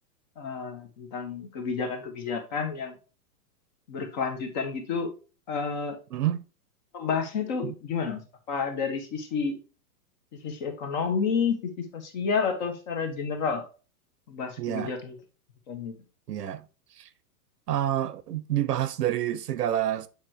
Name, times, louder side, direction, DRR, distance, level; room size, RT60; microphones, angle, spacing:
voice 1, 0.4-2.9 3.9-5.1 5.5-6.0 6.9-8.2 8.5-9.6 10.4-11.6 11.9-13.6 14.3-15.1 15.7-15.9, left 5 dB, 30° left, 1.2 m, -30 dB
voice 2, 6.1-6.4 7.6-7.7 14.6-14.9 16.3-16.7 17.0-17.1 17.7-20.1, right 12 dB, 80° right, 1.0 m, -28 dB
8.7 x 4.5 x 2.9 m
supercardioid pair, 175°, 47 cm